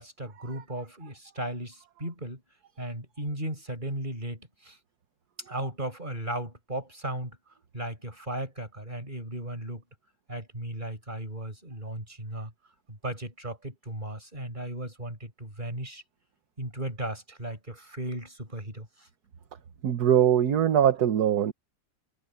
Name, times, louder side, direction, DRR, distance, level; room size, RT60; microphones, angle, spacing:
voice 1, 0.0-2.4 2.8-4.8 5.5-7.4 7.7-9.8 10.3-12.5 12.9-16.0 16.6-18.9, right 1 dB, 25° right, 5.1 m, -36 dB
voice 2, 19.8-21.5, right 10 dB, 60° right, 1.5 m, -22 dB
omnidirectional pair, 2.1 m